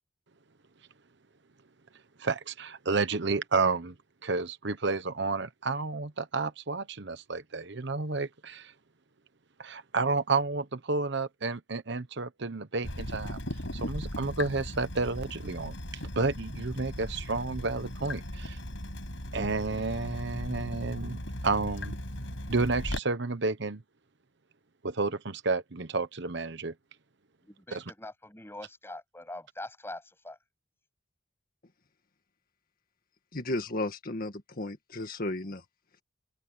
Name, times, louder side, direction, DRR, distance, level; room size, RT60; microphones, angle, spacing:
voice 1, 2.2-3.9 4.2-8.7 9.6-13.4 13.7-15.7 16.2-18.6 19.3-21.9 22.5-23.8 24.8-26.7 27.7-27.8, right 3 dB, 65° right, 1.1 m, -31 dB
Water tap faucet / Drip, 12.8-23.0, left 1 dB, 75° left, 7.6 m, -37 dB
voice 2, 27.4-30.4, left 2 dB, 15° left, 7.7 m, -43 dB
voice 3, 33.3-35.6, left 2 dB, 50° left, 1.8 m, -34 dB
head